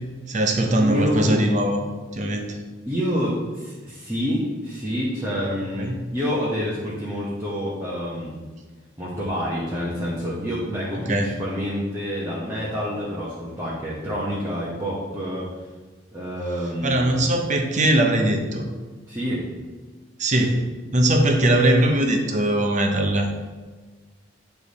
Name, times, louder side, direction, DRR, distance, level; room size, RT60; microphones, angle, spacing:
voice 1, 0.3-1.8 2.1-2.6 5.8-5.9 11.1-11.3 16.8-18.7 20.2-20.6 20.9-23.4, right 1 dB, 40° right, 4 dB, 0.7 m, -20 dB
voice 2, 0.8-1.7 2.8-8.4 9.0-15.5 16.1-17.1 19.1-19.4 20.3-20.5, equal, 15° right, -7 dB, 1.0 m, -27 dB
8.6 x 3.4 x 4.1 m, 1.3 s
head